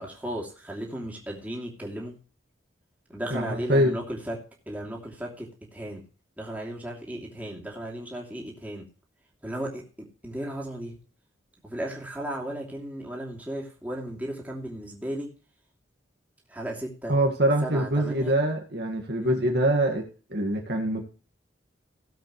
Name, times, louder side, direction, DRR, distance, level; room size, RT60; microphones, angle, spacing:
voice 1, 0.0-2.2 3.1-6.0 6.4-8.8 9.4-11.0 11.6-15.3 16.5-17.2 17.6-18.3 19.2-19.4, right 1 dB, 10° right, -2 dB, 2.9 m, -35 dB
voice 2, 3.3-4.0 17.1-20.0 20.3-21.0, right 1 dB, 55° right, 2 dB, 1.8 m, -24 dB
17.5 x 7.7 x 3.2 m, 0.37 s
head